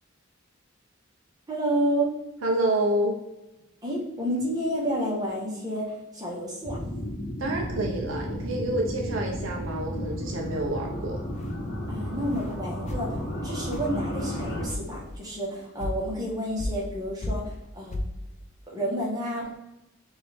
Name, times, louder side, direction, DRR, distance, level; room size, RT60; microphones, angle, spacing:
voice 1, 1.5-2.1 3.8-6.8 11.9-13.2 13.4-18.0 18.7-19.5, right 1 dB, 20° right, -5 dB, 1.2 m, -30 dB
voice 2, 2.4-3.2 7.4-11.2, right 1 dB, 65° right, 1 dB, 0.6 m, -28 dB
sound 1, 6.6-14.7, equal, 50° left, 1.0 m, -33 dB
sound 2, 11.2-11.5 12.2-12.5 12.9-13.1 13.7-13.9 14.4-14.5 14.7-15.2 15.8-16.0 16.6-17.0 17.2-17.6 17.9-18.2, left 1 dB, 35° left, 0.5 m, -33 dB
4.6 x 2.6 x 3.4 m, 0.94 s
head